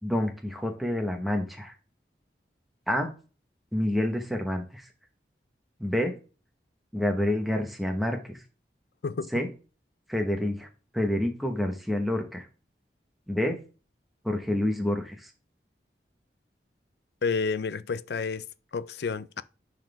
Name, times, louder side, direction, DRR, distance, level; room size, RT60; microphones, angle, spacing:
voice 1, 0.0-1.7 2.9-3.1 3.7-4.9 5.8-6.2 6.9-8.4 9.3-9.5 10.1-10.7 10.9-12.5 13.3-13.6 14.2-15.3, left 1 dB, ahead, 1.1 m, -28 dB
voice 2, 17.2-18.5 18.7-19.4, left 5 dB, 70° left, 0.4 m, -30 dB
10.5 x 4.2 x 3.4 m
head